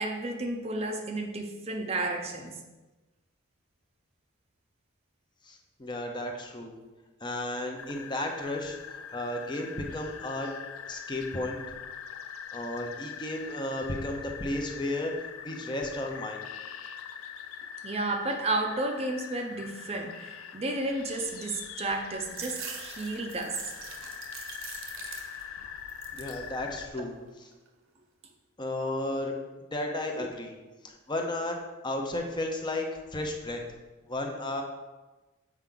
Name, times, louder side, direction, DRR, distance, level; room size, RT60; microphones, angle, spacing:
voice 1, 0.0-2.6 17.8-23.6 30.2-30.3, right 2 dB, 30° right, 3 dB, 0.6 m, -32 dB
voice 2, 5.4-6.8 7.2-8.8 9.1-10.5 10.9-11.6 12.5-16.4 26.1-27.5 28.6-29.3 29.7-30.6 30.8-32.8 33.1-33.6 34.1-34.6, left 1 dB, 20° left, 2 dB, 0.7 m, -33 dB
sound 1, 7.8-26.9, left 8 dB, 80° left, 0.4 m, -43 dB
sound 2, 22.3-25.6 25.9-26.5 27.0-27.7, right 7 dB, 65° right, 0.7 m, -44 dB
7.3 x 4.5 x 3.8 m, 1.2 s
head